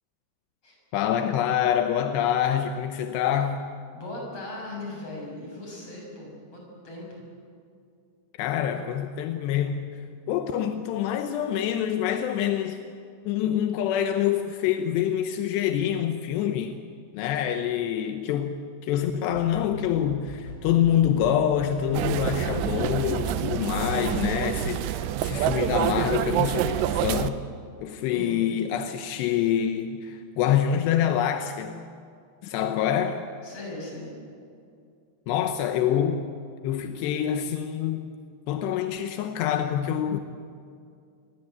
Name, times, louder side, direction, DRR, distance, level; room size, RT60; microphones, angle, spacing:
voice 1, 0.9-3.7 8.4-12.8 13.3-16.8 17.1-27.4 27.8-31.8 32.4-33.2 35.3-36.3 36.6-38.1 38.5-40.2, left 10 dB, 75° left, 7 dB, 2.6 m, -26 dB
voice 2, 3.9-7.3 28.1-28.4 33.4-34.2, left 2 dB, 30° left, -1 dB, 7.8 m, -38 dB
sound 1, 19.3-24.9, left 1 dB, 45° left, 5.2 m, -41 dB
sound 2, 21.9-27.3, right 12 dB, 85° right, 2.4 m, -27 dB
27.0 x 21.0 x 8.2 m, 2.3 s
omnidirectional pair, 5.9 m